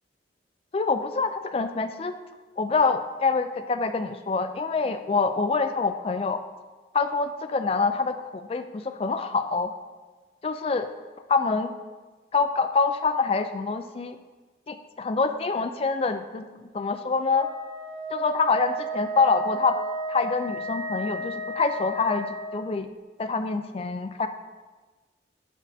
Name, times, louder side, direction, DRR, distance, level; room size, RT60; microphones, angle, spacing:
voice 1, 0.7-2.2 2.6-6.4 6.9-9.7 10.4-10.9 11.3-11.7 12.3-14.2 14.7-16.5 16.7-17.5 18.1-19.8 20.1-22.3 22.5-22.9 23.2-24.3, left 4 dB, 30° left, 9 dB, 0.3 m, -25 dB
Wind instrument woodwind instrument, 17.3-22.6, right 2 dB, 75° right, 0.8 m, -33 dB
12.0 x 4.3 x 2.7 m, 1.3 s
head